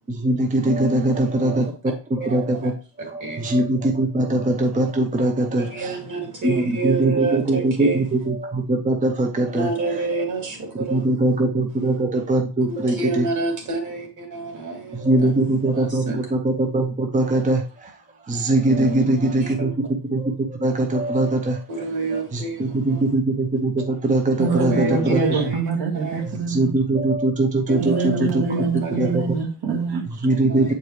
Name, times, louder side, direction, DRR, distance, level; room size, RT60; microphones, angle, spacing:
voice 1, 0.1-1.7 2.1-2.7 3.0-6.0 6.4-10.1 10.9-13.3 14.9-17.9 18.3-19.7 20.1-21.9 22.1-25.5 26.2-28.4 29.0-29.4 30.2-30.7, right 2 dB, 20° right, 0.5 m, -22 dB
voice 2, 1.3-1.7 2.2-2.7 3.2-3.5 5.6-8.0 9.5-11.1 12.7-15.4 15.7-16.2 18.8-19.7 21.7-23.0 24.5-25.6 26.0-26.2 27.7-29.1 30.5-30.7, right 3 dB, 45° right, 2.5 m, -29 dB
voice 3, 24.4-26.7 27.8-30.3, right 4 dB, 65° right, 1.6 m, -25 dB
8.3 x 4.6 x 3.2 m
wide cardioid pair, 160°, 43 cm